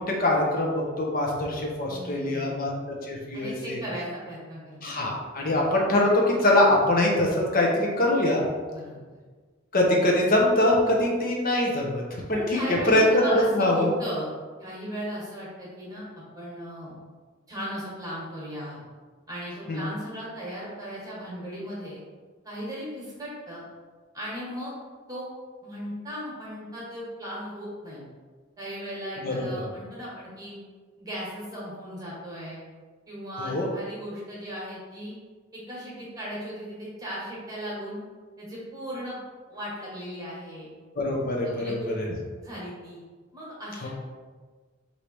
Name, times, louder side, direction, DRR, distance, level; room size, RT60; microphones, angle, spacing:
voice 1, 0.0-2.7 3.1-3.8 4.8-8.4 9.7-13.9 19.7-19.9 29.2-29.5 33.4-33.7 41.0-42.0 43.8-43.9, left 1 dB, 50° left, -1 dB, 0.8 m, -23 dB
voice 2, 1.9-2.7 3.3-5.0 8.7-9.0 12.3-14.3 14.6-16.0 16.3-16.9 17.5-18.8 19.3-22.0 22.4-23.6 24.1-24.7 25.1-25.3 25.6-28.0 28.6-30.6 31.0-32.6 33.1-35.1 35.5-38.0 38.4-39.2 39.5-40.7 41.4-41.9 42.4-43.0 43.3-43.9, equal, 20° right, -6 dB, 1.3 m, -36 dB
3.2 x 2.8 x 4.6 m, 1.4 s
head